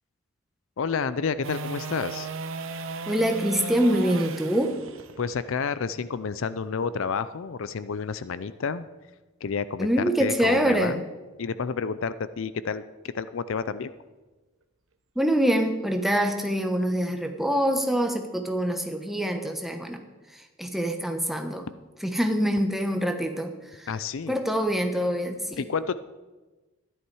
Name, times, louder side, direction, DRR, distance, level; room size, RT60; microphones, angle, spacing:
voice 1, 0.8-2.3 5.2-8.8 9.4-11.0 11.4-12.8 13.1-13.9 23.9-24.4 25.6-26.0, left 5 dB, 60° left, 15 dB, 0.4 m, -30 dB
sound 1, 1.4-7.6 14.1-14.2, right 3 dB, 65° right, 0.9 m, -36 dB
voice 2, 3.1-4.7 9.8-11.0 15.2-20.0 20.3-21.7 22.0-23.9 24.3-25.7, equal, ahead, 5 dB, 1.0 m, -25 dB
13.0 x 11.0 x 4.7 m, 1.2 s
head